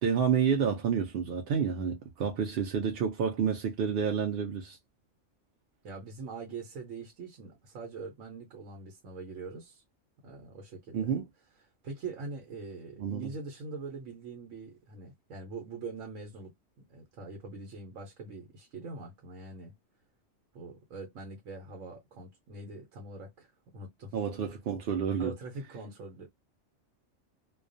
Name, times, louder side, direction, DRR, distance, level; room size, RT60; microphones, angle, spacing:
voice 1, 0.0-4.8 10.9-11.3 13.0-13.3 24.1-25.3, right 7 dB, 60° right, 0.6 m, -29 dB
voice 2, 2.4-2.9 5.8-9.8 10.2-11.1 11.8-19.7 20.5-24.2 25.2-26.3, right 3 dB, 85° right, 1.1 m, -43 dB
2.3 x 2.2 x 2.5 m
omnidirectional pair, 1.3 m